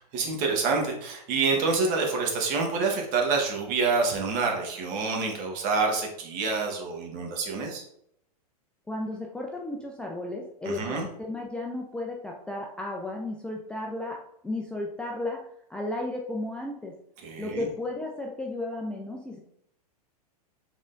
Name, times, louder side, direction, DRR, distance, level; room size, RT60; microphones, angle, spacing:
voice 1, 0.0-7.8 10.6-11.1 17.2-17.7, right 4 dB, 40° right, 1 dB, 1.2 m, -27 dB
voice 2, 8.9-14.2 14.4-15.4 15.7-16.9 17.4-19.4, left 2 dB, 5° left, -1 dB, 0.4 m, -34 dB
5.4 x 3.6 x 2.6 m, 0.73 s
hypercardioid pair, 125°, 20 cm